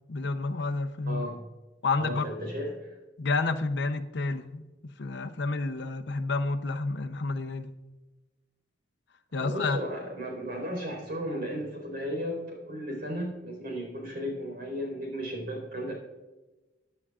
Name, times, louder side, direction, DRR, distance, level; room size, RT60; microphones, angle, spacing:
voice 1, 0.1-1.2 1.8-2.3 3.2-7.7 9.3-9.8, left 3 dB, 65° left, 9 dB, 0.7 m, -30 dB
voice 2, 1.1-1.4 1.9-3.0 9.3-15.9, equal, 55° right, 0 dB, 4.2 m, -35 dB
16.5 x 10.0 x 2.4 m, 1.1 s
head